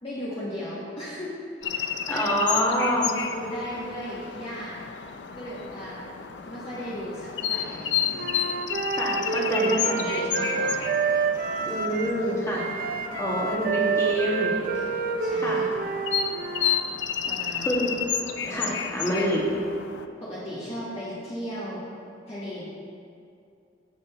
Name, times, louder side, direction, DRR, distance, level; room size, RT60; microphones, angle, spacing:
voice 1, 0.0-1.3 1.7-2.6 3.0-4.8 5.3-6.0 6.5-8.3 9.5-9.7 10.0-10.8 15.2-15.6 17.2-17.7 18.5-18.7 20.2-21.8 22.3-22.6, equal, 35° left, -10 dB, 1.7 m, -36 dB
sound 1, 1.6-20.1, left 8 dB, 80° left, 0.5 m, -32 dB
voice 2, 2.1-3.1 9.0-10.1 11.7-12.6 13.2-14.5 15.4-15.7 17.6-17.9 18.5-19.5, equal, 15° left, -5 dB, 2.0 m, -26 dB
Wind instrument woodwind instrument, 8.1-12.2 12.5-16.8, right 4 dB, 55° right, 0.6 m, -28 dB
16.5 x 6.2 x 3.1 m, 2.4 s
head